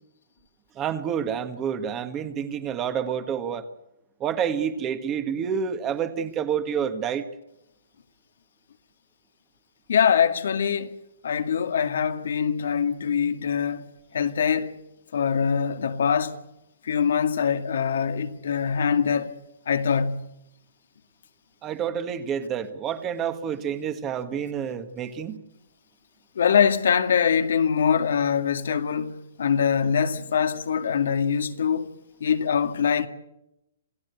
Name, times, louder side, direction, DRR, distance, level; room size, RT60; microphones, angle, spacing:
voice 1, 0.8-3.6 4.2-7.2 21.6-25.4, right 8 dB, 20° right, 1.8 m, -28 dB
voice 2, 9.9-10.9 11.2-13.8 14.1-14.7 15.1-16.3 16.9-19.3 19.7-20.2 26.4-29.1 29.4-31.9 32.2-33.1, left 7 dB, 70° left, 2.1 m, -23 dB
27.5 x 16.0 x 8.3 m
hypercardioid pair, 155°, 0 cm